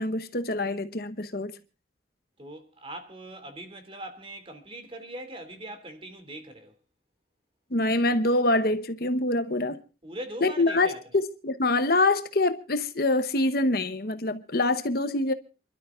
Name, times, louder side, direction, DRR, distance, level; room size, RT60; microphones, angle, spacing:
voice 1, 0.0-1.6 7.7-9.8 10.4-15.3, left 2 dB, 55° left, 1.0 m, -25 dB
voice 2, 2.4-6.8 10.0-11.0, right 1 dB, 30° right, 2.7 m, -41 dB
28.5 x 12.5 x 2.4 m
head